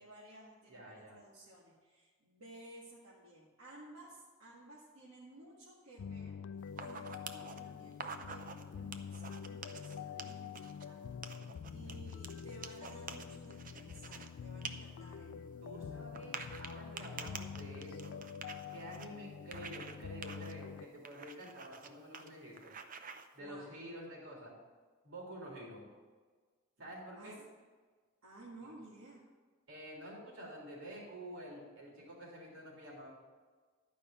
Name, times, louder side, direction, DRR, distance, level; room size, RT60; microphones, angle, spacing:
voice 1, 0.0-6.4 6.8-11.1 11.7-15.4 23.4-23.8 27.2-27.3 28.2-29.2, right 2 dB, 85° right, -6 dB, 1.8 m, -55 dB
voice 2, 0.7-1.2 15.6-18.2 18.7-22.7 23.3-24.5 25.0-25.9 26.8-27.4 28.6-28.7 29.7-33.1, equal, 65° right, -3 dB, 3.3 m, -49 dB
sound 1, 6.0-20.9, left 7 dB, 60° left, 0.3 m, -46 dB
sound 2, 6.7-7.6 7.9-8.6 8.9-10.8 11.2-14.3 14.6-14.7 15.1-15.2 16.2-19.1 19.5-20.0 20.2-20.5 21.1-21.9 22.1-22.3 22.6-23.3, right 5 dB, 40° right, 0.6 m, -47 dB
11.5 x 5.3 x 6.9 m, 1.5 s
head